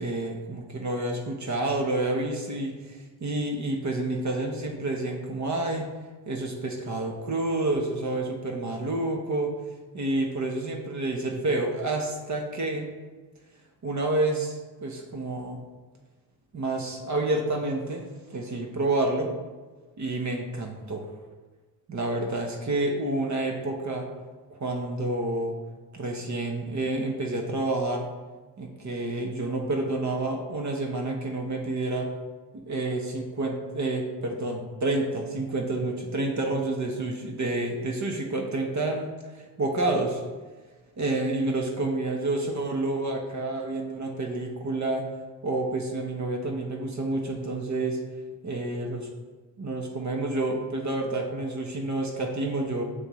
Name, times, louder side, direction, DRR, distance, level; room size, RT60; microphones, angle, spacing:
voice 1, 0.0-5.9 6.3-9.5 9.9-12.9 13.8-15.6 16.5-19.3 20.0-21.0 21.9-24.1 24.6-25.6 25.9-28.1 28.6-32.1 32.7-39.1 39.4-40.2 41.0-45.0 45.4-48.0 48.4-49.1 49.6-52.8, right 2 dB, 45° right, 2 dB, 1.1 m, -29 dB
7.1 x 6.4 x 3.1 m, 1.3 s
cardioid pair, 90°, 41 cm